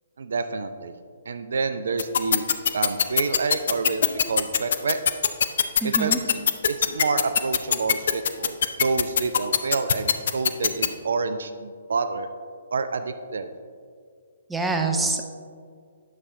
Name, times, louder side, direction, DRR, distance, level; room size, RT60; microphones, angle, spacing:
voice 1, 0.2-0.9 1.3-2.4 2.7-4.0 4.3-5.0 5.8-6.1 6.7-12.3 12.7-13.5, right 4 dB, 60° right, 10 dB, 0.4 m, -28 dB
sound 1, 2.0-10.9, left 7 dB, 55° left, 0.4 m, -20 dB
voice 2, 5.8-6.2 14.5-15.3, right 3 dB, 5° right, 4 dB, 0.5 m, -25 dB
9.5 x 6.8 x 2.5 m, 2.1 s
figure-of-eight pair, 125°, 0 cm